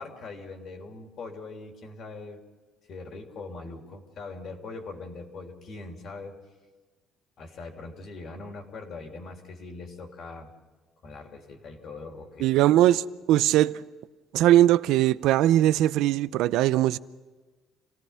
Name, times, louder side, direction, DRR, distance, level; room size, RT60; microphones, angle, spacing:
voice 1, 0.0-2.4 2.9-6.3 7.4-10.5 11.0-12.5, left 3 dB, 45° left, 3.3 m, -41 dB
voice 2, 12.4-13.8 14.3-17.0, right 13 dB, 70° right, 0.6 m, -20 dB
28.5 x 18.0 x 5.8 m
cardioid pair, 155°, 0 cm